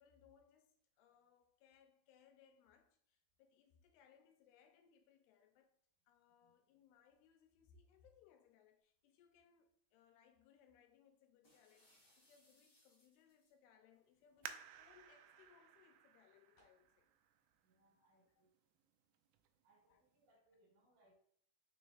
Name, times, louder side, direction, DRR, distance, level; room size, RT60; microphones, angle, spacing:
voice 1, 0.0-5.8 6.1-17.1 18.4-18.5 19.9-20.0, left 7 dB, 80° left, 2.6 m, -70 dB
sound 1, 11.4-13.6, left 1 dB, 25° left, 2.2 m, -73 dB
sound 2, 12.0-12.3 13.2-13.3 13.6-13.7 14.4-14.7 15.4-15.6 16.0-16.1 16.6-16.8, left 1 dB, 50° left, 3.0 m, -77 dB
sound 3, 14.4-17.8 18.4-18.5 19.1-19.5 19.9-20.0, right 10 dB, 80° right, 2.2 m, -55 dB
voice 2, 17.6-18.5 19.6-21.1, right 1 dB, 60° right, 2.8 m, -75 dB
6.4 x 6.1 x 2.5 m
omnidirectional pair, 4.7 m